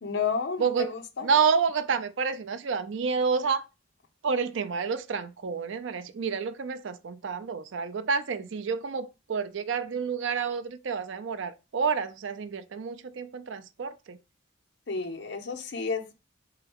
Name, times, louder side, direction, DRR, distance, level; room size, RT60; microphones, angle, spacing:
voice 1, 0.0-1.3 14.9-16.1, left 5 dB, 60° left, 0.7 m, -31 dB
voice 2, 0.6-0.9 1.2-3.6 4.2-14.2, right 5 dB, 70° right, 0.4 m, -29 dB
4.5 x 3.4 x 3.5 m
head